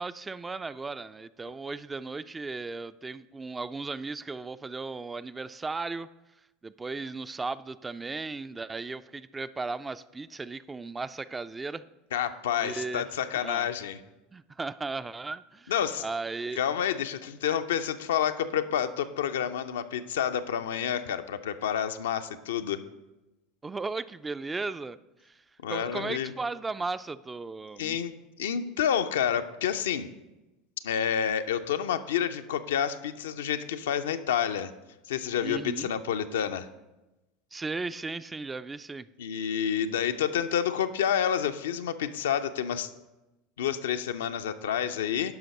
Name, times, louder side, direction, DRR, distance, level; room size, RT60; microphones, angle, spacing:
voice 1, 0.0-6.1 6.6-11.9 12.6-13.0 13.4-13.7 14.3-15.7 16.0-16.6 23.6-25.0 25.2-28.0 35.4-35.9 37.5-39.1, right 3 dB, 20° right, 14 dB, 0.3 m, -36 dB
voice 2, 12.1-14.0 15.7-16.0 16.6-22.8 25.6-26.3 27.8-28.1 28.4-30.1 30.8-34.7 35.1-36.7 39.2-42.9 43.6-45.4, left 9 dB, 75° left, 9 dB, 0.5 m, -29 dB
10.5 x 5.7 x 4.1 m, 1.0 s
hypercardioid pair, 80°, 0 cm